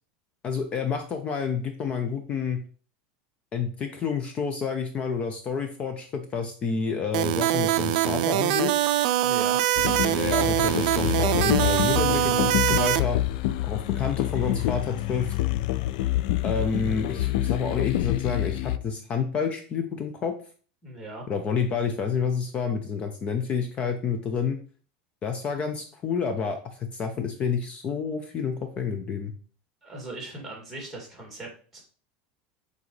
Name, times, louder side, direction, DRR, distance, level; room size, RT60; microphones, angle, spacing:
voice 1, 0.4-2.6 3.5-8.7 9.8-13.2 13.6-15.3 16.4-20.3 21.3-24.6 25.2-29.3, left 6 dB, 25° left, 6 dB, 0.6 m, -29 dB
sound 1, 7.1-13.0, right 14 dB, 70° right, 0.4 m, -23 dB
voice 2, 9.2-9.6 20.8-21.2 29.8-31.8, right 2 dB, ahead, -1 dB, 2.6 m, -39 dB
sound 2, 9.8-18.8, left 15 dB, 65° left, 0.4 m, -27 dB
7.4 x 4.1 x 3.2 m, 0.41 s
supercardioid pair, 155°, 4 cm